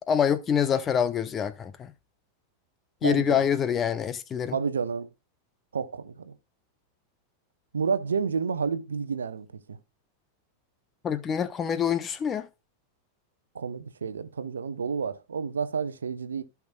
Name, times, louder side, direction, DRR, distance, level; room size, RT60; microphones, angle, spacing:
voice 1, 0.1-1.9 3.0-4.6 11.0-12.5, left 8 dB, 25° left, 0.9 m, -26 dB
voice 2, 3.0-3.5 4.5-5.1 5.7-6.3 7.7-9.8 13.5-16.4, right 6 dB, 70° right, 0.8 m, -30 dB
15.0 x 5.9 x 2.3 m
figure-of-eight pair, 90°, 0 cm